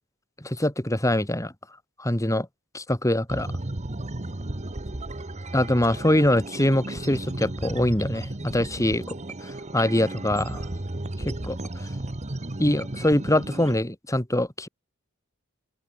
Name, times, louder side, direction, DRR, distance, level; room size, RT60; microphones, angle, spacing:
voice 1, 0.4-1.5 2.0-2.5 2.7-3.5 5.5-9.2 9.4-10.7 11.2-11.9 12.6-14.7, left 1 dB, 15° left, 2.8 m, -24 dB
sound 1, 3.3-13.8, right 1 dB, 35° right, 1.3 m, -34 dB
open air
head